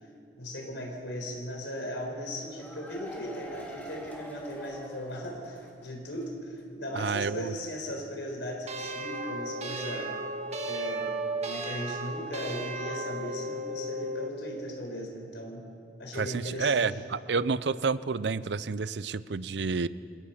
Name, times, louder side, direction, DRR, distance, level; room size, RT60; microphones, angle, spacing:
voice 1, 0.4-10.1 10.7-11.1 11.4-15.6 16.0-16.8, equal, 90° left, 0 dB, 4.5 m, -37 dB
sound 1, 2.2-5.9 6.2-6.3 6.6-6.7, equal, 10° left, 3.1 m, -44 dB
voice 2, 6.9-7.5 16.1-19.9, right 4 dB, 70° right, 16 dB, 0.6 m, -29 dB
sound 2, 8.7-14.4, right 1 dB, 40° right, 1.5 m, -35 dB
27.5 x 17.5 x 5.9 m, 2.4 s
head